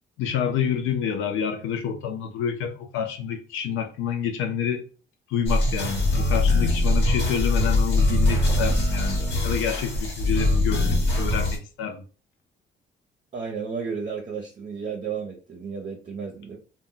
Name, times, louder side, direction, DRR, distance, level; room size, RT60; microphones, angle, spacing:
voice 1, 0.2-4.9 5.3-12.0, left 7 dB, 90° left, 0.4 m, -28 dB
sound 1, 5.5-11.6, left 2 dB, 60° left, 1.1 m, -22 dB
voice 2, 13.3-16.6, right 6 dB, 40° right, 0.6 m, -33 dB
2.1 x 2.1 x 3.7 m
cardioid pair, 90°, 20 cm